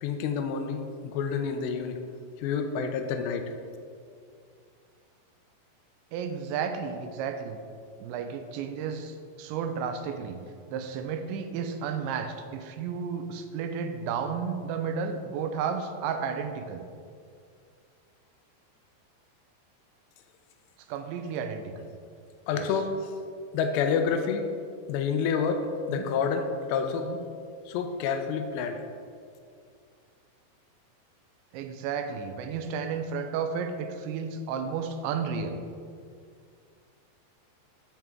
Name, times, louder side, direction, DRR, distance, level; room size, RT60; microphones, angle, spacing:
voice 1, 0.0-2.0 2.4-3.5 22.5-23.1 23.5-24.5 24.9-27.1 27.7-28.8, left 6 dB, 85° left, 6 dB, 2.6 m, -28 dB
voice 2, 6.1-7.6 8.0-10.4 10.7-16.9 20.9-21.9 22.5-22.7 25.9-26.1 27.0-27.2 31.5-35.6, right 6 dB, 85° right, 6 dB, 2.9 m, -32 dB
12.0 x 7.3 x 3.6 m, 2.3 s
omnidirectional pair, 5.4 m